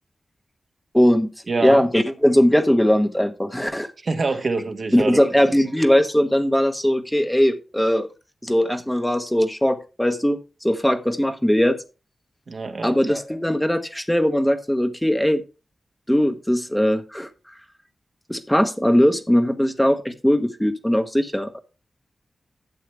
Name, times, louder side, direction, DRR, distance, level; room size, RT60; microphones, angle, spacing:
voice 1, 0.9-1.3 1.6-3.9 4.9-8.1 8.4-11.8 12.8-15.4 16.1-17.3 18.3-21.6, equal, 5° left, 1.2 m, -20 dB
voice 2, 1.5-1.9 4.0-5.2 12.5-13.0, right 3 dB, 55° right, 1.3 m, -25 dB
11.5 x 8.4 x 3.4 m
wide cardioid pair, 120°, 0 cm